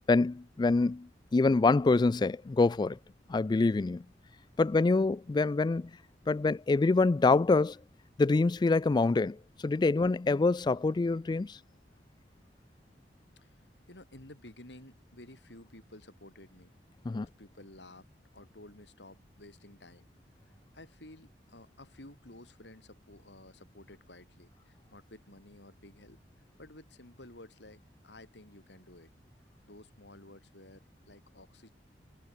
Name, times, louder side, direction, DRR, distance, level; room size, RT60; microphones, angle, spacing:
voice 1, 0.1-3.0 3.3-4.0 4.6-5.9 6.3-7.8 8.2-11.6 17.1-17.3, left 3 dB, 25° left, 0.3 m, -26 dB
voice 2, 13.4-16.7 17.1-18.1 18.3-20.1 20.4-26.2 26.6-29.1 29.7-31.7, left 1 dB, 80° left, 4.8 m, -53 dB
head